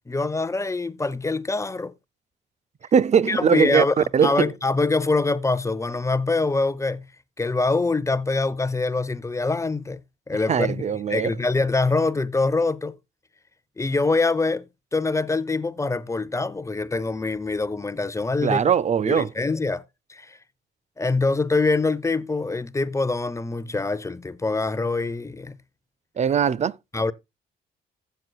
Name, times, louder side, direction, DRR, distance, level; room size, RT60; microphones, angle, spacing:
voice 1, 0.1-1.9 3.2-7.0 7.4-10.0 10.3-10.8 11.1-13.0 13.8-14.6 14.9-18.6 19.0-19.8 20.1-20.4 21.0-25.6 26.9-27.1, left 3 dB, 15° left, 0.7 m, -24 dB
voice 2, 2.9-3.8 4.1-4.5 10.5-11.3 18.4-19.3 26.2-26.7, right 7 dB, 35° right, 0.4 m, -20 dB
15.0 x 7.8 x 2.3 m
cardioid pair, 90°, 20 cm